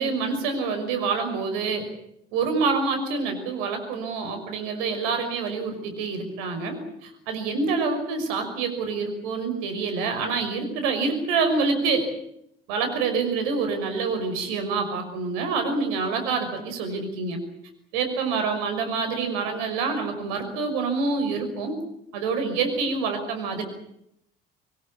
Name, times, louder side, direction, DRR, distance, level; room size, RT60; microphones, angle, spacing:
voice 1, 0.0-1.9 2.3-12.1 12.7-17.4 17.9-21.8 22.1-23.6, right 4 dB, 65° right, 6 dB, 6.0 m, -26 dB
26.0 x 20.0 x 8.6 m, 0.75 s
figure-of-eight pair, 55°, 30 cm